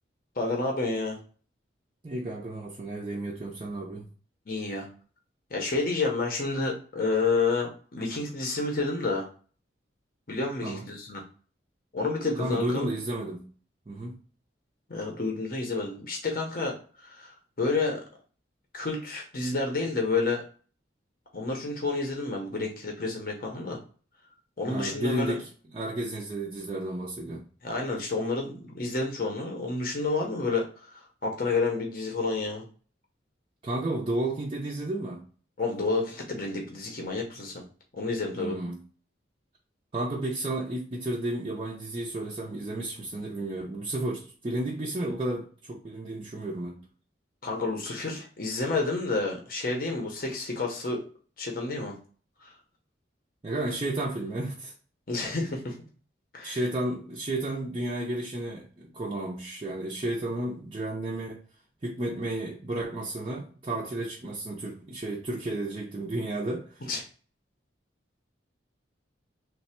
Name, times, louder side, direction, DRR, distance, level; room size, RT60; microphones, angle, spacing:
voice 1, 0.4-1.2 4.5-4.9 5.5-9.3 10.3-11.2 11.9-12.9 14.9-16.7 17.0-18.0 18.7-20.4 21.3-23.8 24.6-25.4 27.6-30.7 30.9-32.6 35.6-37.6 38.0-38.6 47.4-51.0 51.4-51.9 52.4-52.5 55.1-55.8 56.3-56.6 66.8-67.0, left 3 dB, 50° left, 0.7 m, -29 dB
voice 2, 2.0-4.1 10.6-10.9 12.4-13.5 13.9-14.1 24.7-27.4 33.6-35.2 38.3-38.8 39.9-46.8 53.4-54.7 56.4-61.4 61.8-66.9, right 1 dB, 30° right, 0.4 m, -32 dB
3.2 x 2.1 x 4.2 m
head